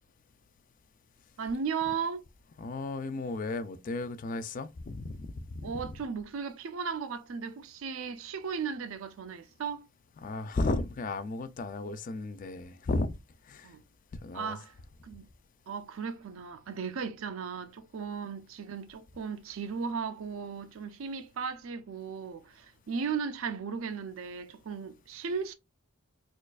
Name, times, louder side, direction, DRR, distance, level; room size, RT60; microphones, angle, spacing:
voice 1, 1.4-2.2 5.6-9.9 13.6-13.8 14.3-14.7 15.0-15.3 15.7-25.5, right 6 dB, 65° right, 0.5 m, -36 dB
voice 2, 2.6-6.0 10.2-13.2 13.5-13.7 14.2-14.6, left 2 dB, 40° left, 0.3 m, -34 dB
4.3 x 2.4 x 2.3 m
head